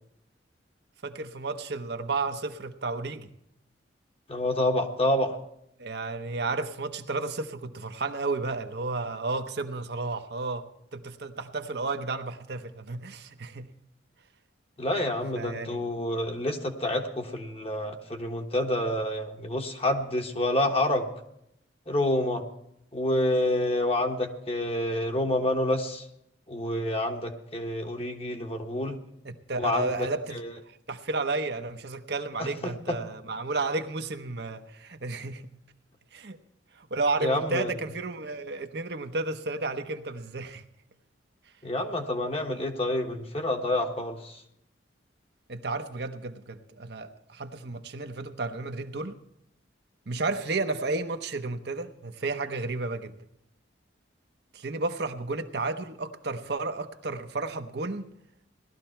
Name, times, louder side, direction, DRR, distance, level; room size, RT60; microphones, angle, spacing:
voice 1, 1.0-3.3 5.8-10.6 10.9-13.7 15.4-15.8 29.2-30.4 30.9-35.5 36.1-36.4 36.8-40.6 45.5-49.2 50.1-53.1 54.5-58.1, right 3 dB, 60° right, 7 dB, 0.9 m, -32 dB
voice 2, 4.3-5.4 14.8-21.1 21.9-22.4 22.9-26.1 26.5-29.0 29.6-29.9 30.3-30.5 32.4-32.7 37.2-37.7 41.6-44.4, left 1 dB, 30° left, 4 dB, 1.2 m, -28 dB
18.0 x 12.5 x 4.5 m, 0.78 s
head